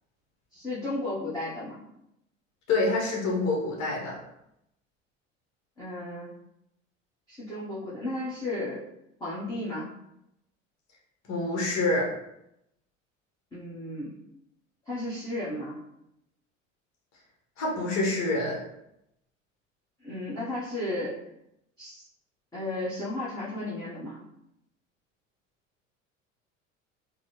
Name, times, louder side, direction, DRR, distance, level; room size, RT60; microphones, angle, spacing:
voice 1, 0.5-1.7 5.8-6.3 7.3-8.8 9.2-9.9 13.5-14.1 14.9-15.8 20.0-21.2 21.8-22.0 22.5-24.2, left 1 dB, 10° left, -10 dB, 1.2 m, -34 dB
voice 2, 2.7-4.2 11.3-12.1 17.6-18.6, left 2 dB, 45° left, -2 dB, 1.2 m, -26 dB
3.9 x 2.2 x 3.0 m, 0.81 s
figure-of-eight pair, 65°, 39 cm